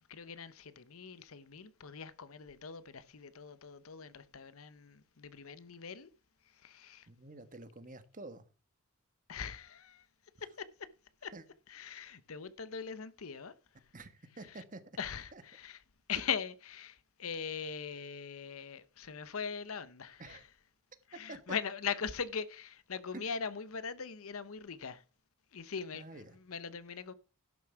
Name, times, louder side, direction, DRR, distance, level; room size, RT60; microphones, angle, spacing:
voice 1, 0.1-6.1 6.5-7.1 9.3-10.1 10.4-10.9 11.2-11.3 11.7-13.5 14.5-14.6 15.0-15.8 16.1-20.4 21.1-25.0 25.5-27.1, left 6 dB, 70° left, 0.8 m, -41 dB
voice 2, 7.1-8.4 11.3-11.4 13.9-14.8 15.3-15.4 20.2-20.4 21.3-21.6 23.1-23.3 25.9-26.4, right 2 dB, 35° right, 1.2 m, -48 dB
11.5 x 7.0 x 5.8 m
head